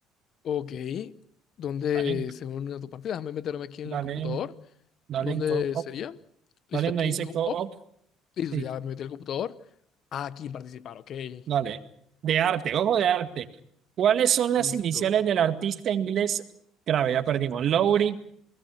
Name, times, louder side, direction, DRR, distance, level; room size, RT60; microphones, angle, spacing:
voice 1, 0.4-1.1 1.6-4.5 5.2-6.2 6.7-7.2 7.5-7.6 8.4-9.6 10.1-11.4 14.6-15.1, left 9 dB, 55° left, 1.0 m, -32 dB
voice 2, 3.9-4.4 5.1-5.8 6.7-7.7 8.5-8.6 11.5-11.8 12.2-13.5 14.0-16.4 16.9-18.2, right 9 dB, 55° right, 1.9 m, -25 dB
28.5 x 19.5 x 6.4 m
supercardioid pair, 95°, 0 cm